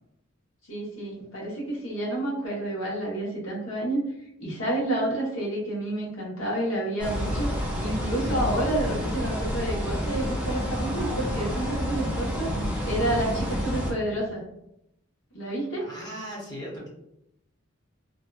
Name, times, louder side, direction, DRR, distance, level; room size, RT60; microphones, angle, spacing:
voice 1, 0.7-4.0 4.4-7.5 7.8-12.5 12.8-14.4 15.3-15.8, right 1 dB, 85° left, -4 dB, 1.0 m, -29 dB
sound 1, 7.0-13.9, equal, 5° right, 0.5 m, -29 dB
voice 2, 15.8-16.9, equal, 20° left, -5 dB, 0.8 m, -38 dB
2.6 x 2.2 x 2.3 m, 0.81 s
head